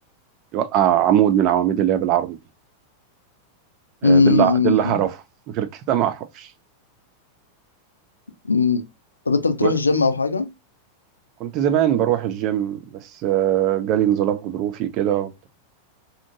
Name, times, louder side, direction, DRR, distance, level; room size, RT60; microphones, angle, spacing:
voice 1, 0.5-2.4 4.0-5.2 5.5-6.5 9.6-9.7 11.4-15.5, right 11 dB, 40° right, 0.4 m, -21 dB
voice 2, 4.0-5.0 8.4-8.8 9.3-10.5, left 4 dB, 80° left, 0.5 m, -18 dB
2.7 x 2.6 x 2.5 m
figure-of-eight pair, 90°, 0 cm